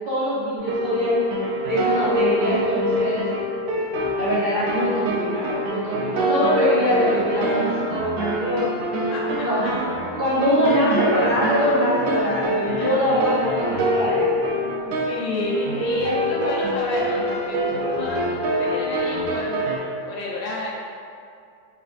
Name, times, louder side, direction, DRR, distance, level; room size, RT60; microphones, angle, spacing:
voice 1, 0.1-3.3 4.2-9.1 9.4-9.7 10.2-14.3, equal, 50° right, -10 dB, 0.6 m, -23 dB
sound 1, 0.6-19.8, equal, 85° right, 1.2 m, -25 dB
voice 2, 9.1-9.4 12.7-13.1 13.4-13.5 14.8-19.7 20.1-20.7, left 2 dB, 70° left, -5 dB, 1.2 m, -30 dB
3.4 x 3.2 x 2.5 m, 2.4 s
omnidirectional pair, 1.7 m